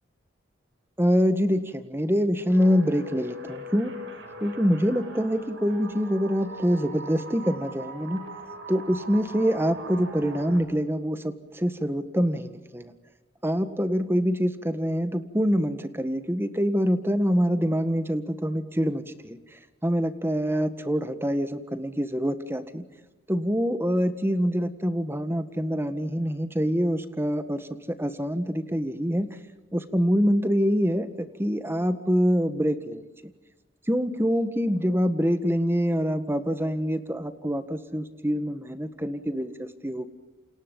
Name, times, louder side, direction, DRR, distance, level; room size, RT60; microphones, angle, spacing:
voice 1, 1.0-3.9 4.4-8.2 8.7-12.9 13.4-19.4 19.8-22.8 23.3-29.3 29.7-33.0 33.9-40.1, equal, 15° right, 10 dB, 1.7 m, -25 dB
sound 1, 2.5-10.6, right 1 dB, 80° right, 6.9 m, -41 dB
29.0 x 27.5 x 5.5 m, 1.1 s
head